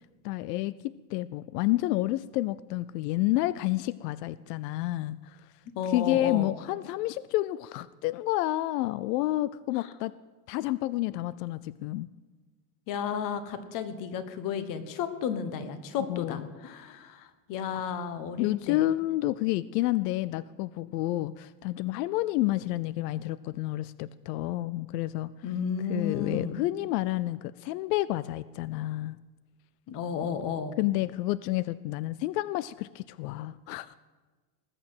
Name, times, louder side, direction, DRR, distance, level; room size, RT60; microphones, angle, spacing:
voice 1, 0.2-5.4 5.9-10.1 10.5-12.1 16.1-16.5 17.7-17.9 18.4-25.3 25.9-29.2 30.8-33.9, left 16 dB, 90° left, 18 dB, 0.6 m, -29 dB
voice 2, 5.7-6.5 9.8-9.9 12.9-18.8 25.4-26.6 29.9-30.7, left 7 dB, 45° left, 11 dB, 1.3 m, -33 dB
19.0 x 6.8 x 7.8 m, 1.4 s
supercardioid pair, 150°, 46 cm